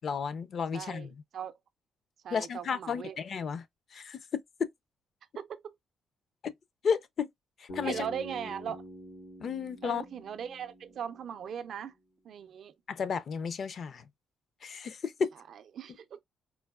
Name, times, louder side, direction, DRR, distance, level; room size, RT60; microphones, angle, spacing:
voice 1, 0.0-1.1 2.3-3.6 3.9-4.7 6.4-6.5 6.8-7.3 7.6-8.1 9.4-10.1 12.9-14.1 14.6-15.3, left 6 dB, 55° left, 0.4 m, -33 dB
voice 2, 0.7-1.6 2.2-3.2 5.4-5.7 7.8-8.8 9.8-11.9 12.2-12.7 15.5-16.2, right 8 dB, 65° right, 0.4 m, -39 dB
Bass guitar, 7.7-11.8, equal, 85° left, 2.9 m, -47 dB
4.4 x 2.3 x 2.3 m
cardioid pair, 90°, 0 cm